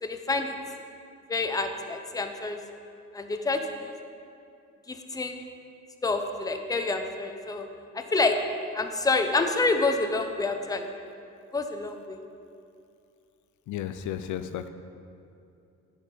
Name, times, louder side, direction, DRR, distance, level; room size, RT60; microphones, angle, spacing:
voice 1, 0.0-0.5 1.3-2.6 3.1-3.9 4.9-5.5 6.0-7.7 7.9-8.4 8.7-10.9 11.5-12.2, left 3 dB, 10° left, 6 dB, 0.6 m, -28 dB
voice 2, 13.7-14.7, left 10 dB, 75° left, 10 dB, 0.5 m, -33 dB
9.9 x 4.7 x 5.1 m, 2.5 s
cardioid pair, 90°, 30 cm